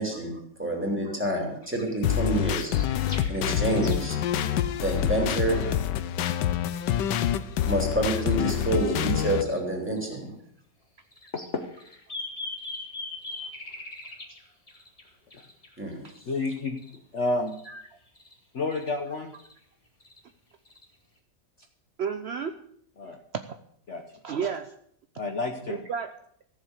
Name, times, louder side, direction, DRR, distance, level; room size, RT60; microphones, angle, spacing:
voice 1, 0.0-2.7 3.3-4.2 4.8-5.6 7.6-10.3 15.8-16.0, right 1 dB, 5° right, 0 dB, 3.4 m, -28 dB
sound 1, 1.6-4.0 4.2-6.4 6.8-7.7 8.1-8.3 8.6-9.6 10.0-10.2 11.1-16.2 16.8-17.0 17.5-17.7 18.1-18.3 18.7-18.9 19.2-19.5 20.0-20.2 20.6-20.8, left 2 dB, 20° left, 1.7 m, -42 dB
sound 2, 2.0-9.4, left 11 dB, 80° left, 1.4 m, -27 dB
voice 2, 16.3-16.8 17.1-17.5 18.5-19.3 23.0-23.2 23.9-24.0 25.2-25.8, left 3 dB, 45° left, 4 dB, 1.2 m, -29 dB
voice 3, 22.0-22.6 23.0-23.4 24.2-24.7 25.7-26.1, right 6 dB, 70° right, 9 dB, 0.6 m, -32 dB
14.5 x 7.4 x 8.1 m, 0.68 s
omnidirectional pair, 1.9 m